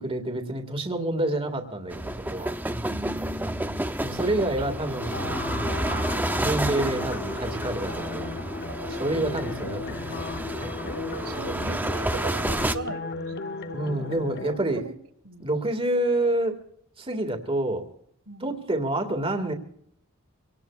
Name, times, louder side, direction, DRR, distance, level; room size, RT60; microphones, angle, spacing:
voice 1, 0.0-3.0 4.0-8.3 8.9-10.0 10.6-10.7 13.7-14.8 15.4-16.6 17.0-17.8 18.4-19.5, right 1 dB, 25° right, 6 dB, 1.9 m, -28 dB
sound 1, 1.9-12.8, right 1 dB, 10° right, 0.6 m, -30 dB
voice 2, 2.8-4.2 4.7-5.0 8.7-9.4 10.8-15.0 15.2-15.6 18.3-18.5, right 3 dB, 85° right, 7 dB, 1.6 m, -40 dB
sound 2, 5.0-14.6, left 4 dB, 50° left, 0.7 m, -36 dB
25.5 x 18.5 x 2.4 m, 0.66 s
head